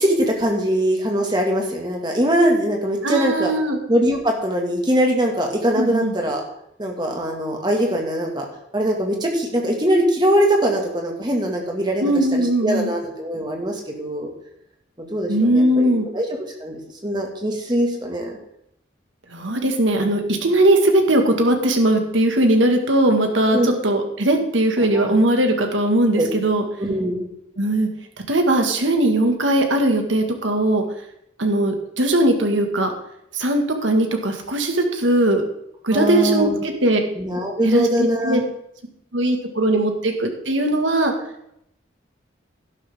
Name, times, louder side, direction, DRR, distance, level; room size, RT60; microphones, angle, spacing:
voice 1, 0.0-3.5 3.9-6.4 6.8-8.4 8.7-12.0 12.3-14.3 15.0-15.9 16.1-18.3 23.5-23.7 24.8-25.1 26.2-26.3 26.8-27.3 35.9-36.6 37.2-38.4, equal, 25° right, 1 dB, 2.2 m, -22 dB
voice 2, 3.0-3.8 5.7-6.1 12.0-12.9 15.3-16.1 19.3-26.6 27.6-27.9 28.3-30.8 31.4-32.9 33.3-35.4 35.8-37.0 37.6-38.4 39.1-41.1, right 1 dB, 90° right, 4 dB, 2.0 m, -19 dB
12.0 x 11.5 x 3.8 m, 0.75 s
head